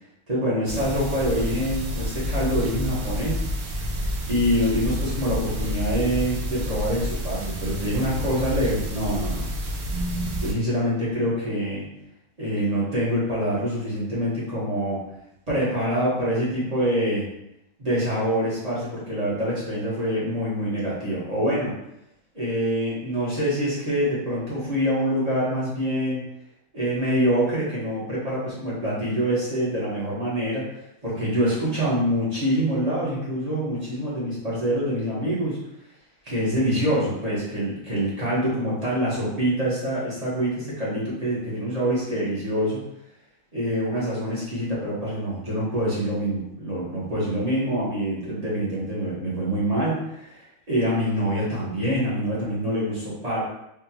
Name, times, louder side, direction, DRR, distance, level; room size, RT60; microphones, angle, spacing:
voice 1, 0.3-3.4 3.7-3.9 4.3-9.5 10.4-11.9 12.4-15.0 15.5-17.3 17.8-21.7 22.3-26.2 26.7-30.7 31.0-35.6 36.2-42.8 43.5-53.4, equal, 25° right, -8 dB, 1.2 m, -25 dB
sound 1, 0.7-10.5, equal, 60° right, 0.7 m, -29 dB
3.7 x 2.5 x 2.9 m, 0.82 s
omnidirectional pair, 1.6 m